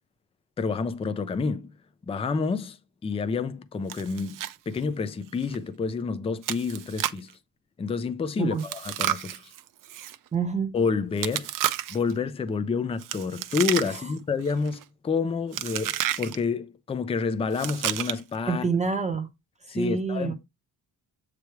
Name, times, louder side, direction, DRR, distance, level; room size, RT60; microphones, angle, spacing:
voice 1, 0.6-1.7 2.1-2.8 3.0-4.4 4.7-7.3 7.8-9.4 10.7-11.5 11.9-18.6 19.7-20.3, left 5 dB, 15° left, 0.4 m, -28 dB
Chewing mastication, 3.9-4.6 4.8-4.9 5.4-5.6 6.4-7.3 8.6-10.2 11.2-12.1 13.0-14.2 14.5-14.8 15.5-16.4 17.5-18.4, right 12 dB, 55° right, 0.6 m, -31 dB
voice 2, 10.3-10.7 13.9-14.0 18.5-19.3 19.6-20.3, right 5 dB, 15° right, 0.8 m, -27 dB
8.0 x 3.3 x 4.5 m
cardioid pair, 175°, 40 cm